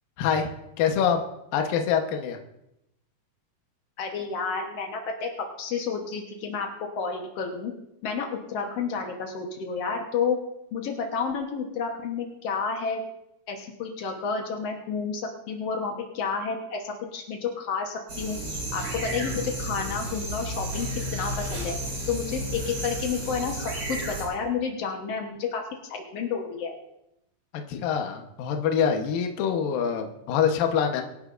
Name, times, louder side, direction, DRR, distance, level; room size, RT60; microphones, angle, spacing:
voice 1, 0.2-0.5 0.8-1.2 1.5-2.4 27.5-31.0, left 7 dB, 70° left, 4 dB, 2.6 m, -25 dB
voice 2, 4.0-5.3 5.6-6.7 7.0-7.7 8.0-10.4 10.7-13.0 13.5-21.7 22.1-26.7, left 5 dB, 90° left, 2 dB, 1.3 m, -30 dB
sound 1, 18.1-24.2, right 1 dB, 35° right, 6.0 m, -32 dB
24.0 x 11.5 x 2.6 m, 0.86 s
omnidirectional pair, 4.7 m